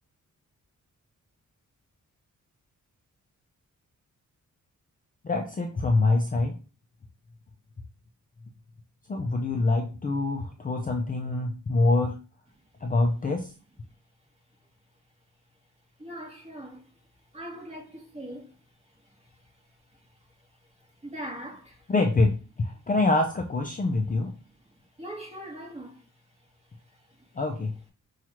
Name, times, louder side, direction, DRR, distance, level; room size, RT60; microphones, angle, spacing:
voice 1, 5.2-6.6 9.1-12.2 12.8-13.5 21.9-24.3 27.3-27.7, left 2 dB, 25° left, 0.5 m, -25 dB
voice 2, 16.0-16.8 17.3-18.5 21.0-21.8 25.0-26.0, right 1 dB, 20° right, 1.4 m, -40 dB
5.7 x 2.4 x 3.0 m
wide cardioid pair, 125°, 31 cm